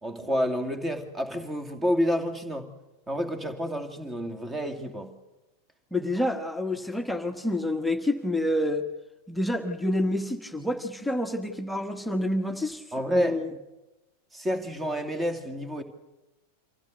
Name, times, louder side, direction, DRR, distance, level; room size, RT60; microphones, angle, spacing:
voice 1, 0.0-2.7 3.1-5.1 6.2-6.3 12.9-13.4 14.3-15.8, equal, 15° right, 2.5 m, -29 dB
voice 2, 5.9-8.9 9.3-12.8 13.1-13.5, left 1 dB, 5° left, 1.4 m, -28 dB
25.0 x 15.5 x 8.0 m
figure-of-eight pair, 90°, 0 cm